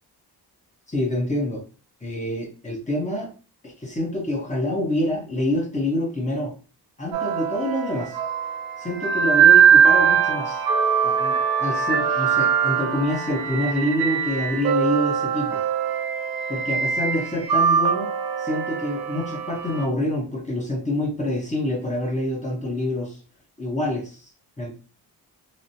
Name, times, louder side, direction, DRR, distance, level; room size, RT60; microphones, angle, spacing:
voice 1, 0.9-1.6 2.0-3.3 3.6-6.5 7.0-8.2 8.8-10.6 11.0-15.6 16.5-18.1 18.4-23.2 23.6-24.3 24.6-24.7, left 1 dB, 20° left, 0.8 m, -26 dB
sound 1, 7.1-19.8, right 7 dB, 65° right, 0.6 m, -21 dB
3.0 x 2.0 x 2.7 m
cardioid pair, 100°, 41 cm